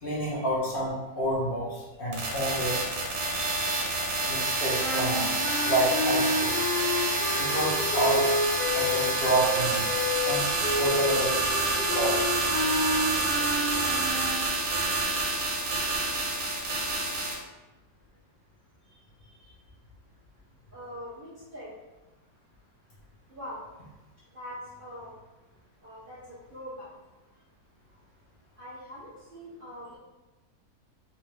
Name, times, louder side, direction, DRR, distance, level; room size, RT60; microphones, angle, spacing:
voice 1, 0.0-2.8 3.3-3.8 4.3-5.3 5.6-6.5 7.4-8.3 8.7-9.8 10.2-10.4 10.7-11.3 11.9-12.2, right 1 dB, 45° left, -7 dB, 0.7 m, -29 dB
sound 1, 2.1-17.3, right 2 dB, 90° right, 1.5 m, -28 dB
sound 2, 4.8-14.4, left 1 dB, 75° left, 1.7 m, -30 dB
voice 2, 20.7-21.7 23.3-23.6 24.3-25.1 25.8-26.9 28.6-30.0, equal, 50° right, -9 dB, 0.6 m, -42 dB
3.6 x 2.7 x 3.1 m, 1.1 s
omnidirectional pair, 1.9 m